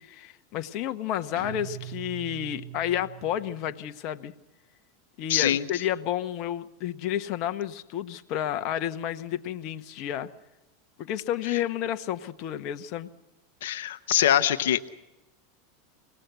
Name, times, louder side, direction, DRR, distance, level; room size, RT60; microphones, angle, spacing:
voice 1, 0.0-4.3 5.2-10.3 11.0-13.1, left 11 dB, 55° left, 9 dB, 1.1 m, -31 dB
Guitar, 1.3-3.9, right 14 dB, 60° right, 1.0 m, -42 dB
voice 2, 5.3-5.7 13.6-14.8, left 11 dB, 75° left, 10 dB, 1.0 m, -23 dB
26.5 x 18.5 x 8.1 m, 1.0 s
hypercardioid pair, 100°, 0 cm